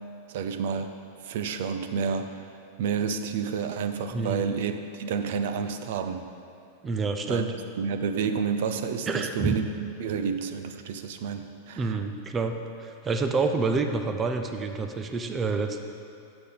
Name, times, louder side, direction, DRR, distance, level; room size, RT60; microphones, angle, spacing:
voice 1, 0.3-0.9 1.2-2.4 2.8-6.3 7.3-7.4 7.8-12.0, right 6 dB, 55° right, 8 dB, 0.6 m, -30 dB
voice 2, 4.1-4.5 6.8-7.5 9.1-9.6 11.8-15.8, right 4 dB, 15° right, 6 dB, 0.5 m, -28 dB
14.0 x 6.8 x 4.1 m, 2.6 s
supercardioid pair, 175°, 0 cm